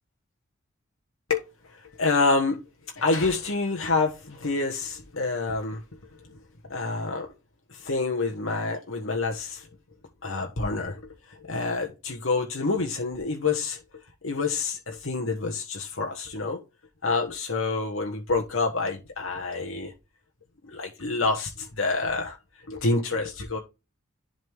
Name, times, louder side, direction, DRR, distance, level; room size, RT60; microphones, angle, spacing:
voice 1, 1.7-2.6 3.0-5.8 6.2-6.3 6.7-7.3 7.7-9.7 10.2-16.6 17.0-19.9 20.7-22.4 22.7-23.6, left 3 dB, 70° left, 1.3 m, -27 dB
11.0 x 4.1 x 3.5 m
head